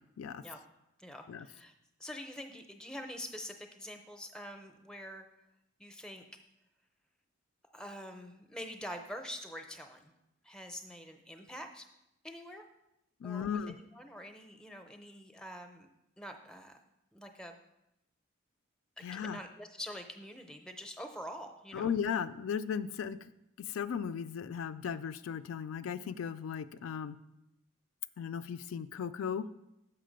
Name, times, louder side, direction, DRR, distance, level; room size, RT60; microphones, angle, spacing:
voice 1, 1.0-1.7 2.0-5.2 5.8-6.2 7.7-10.1 10.4-11.9 12.2-12.6 13.2-15.9 16.2-16.8 17.1-17.6 19.0-21.9, equal, 5° left, 6 dB, 0.5 m, -45 dB
voice 2, 13.2-13.8 19.0-19.4 21.7-23.2 23.6-27.2 28.2-29.5, left 7 dB, 85° left, 13 dB, 0.3 m, -36 dB
6.6 x 5.9 x 5.1 m, 0.87 s
head